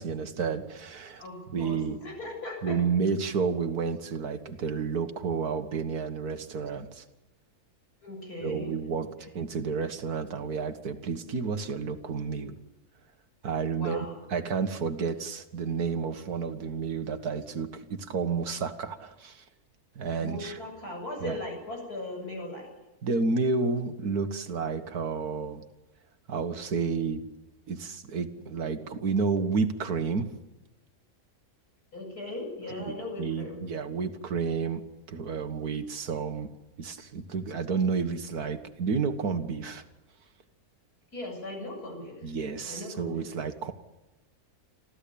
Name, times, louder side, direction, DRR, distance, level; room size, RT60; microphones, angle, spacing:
voice 1, 0.0-1.2 1.5-2.0 2.6-7.0 8.4-12.6 13.4-19.4 20.0-20.6 21.2-21.4 23.0-25.6 26.3-27.2 27.7-30.3 32.8-34.8 35.1-36.5 36.8-39.8 42.2-43.7, right 5 dB, 80° right, 9 dB, 2.1 m, -31 dB
voice 2, 1.2-2.8 8.0-9.3 13.7-14.4 20.2-22.7 31.9-33.6 41.1-42.4 42.7-43.3, left 1 dB, 80° left, 1 dB, 8.3 m, -39 dB
26.0 x 15.0 x 8.7 m, 1.0 s
omnidirectional pair, 1.6 m